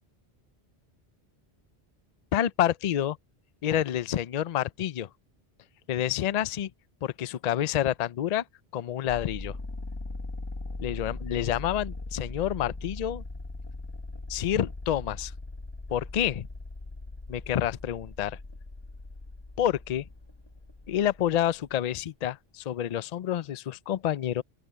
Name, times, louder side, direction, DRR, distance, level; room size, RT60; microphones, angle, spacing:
voice 1, 2.3-3.2 3.6-5.1 5.9-6.7 7.0-8.4 8.7-9.6 10.8-13.2 14.3-15.3 15.9-16.5 17.3-18.4 19.6-20.0 20.9-24.4, left 11 dB, 50° left, 0.5 m, -28 dB
sound 1, 9.1-21.7, left 2 dB, 25° left, 1.0 m, -40 dB
open air
omnidirectional pair, 1.1 m